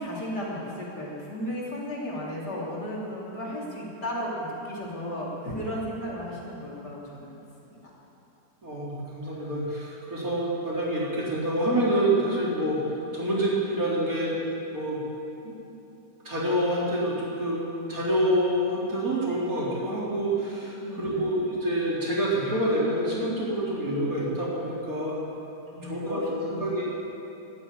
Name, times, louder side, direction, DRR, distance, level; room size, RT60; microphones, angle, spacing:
voice 1, 0.0-7.8 20.8-21.3 25.8-26.7, equal, 75° left, -5 dB, 3.8 m, -34 dB
voice 2, 8.6-12.8 13.1-14.3 14.7-15.0 15.4-15.5 16.2-25.1 25.8-26.9, right 1 dB, 55° right, -6 dB, 4.2 m, -27 dB
12.5 x 12.5 x 9.1 m, 2.9 s
omnidirectional pair, 1.8 m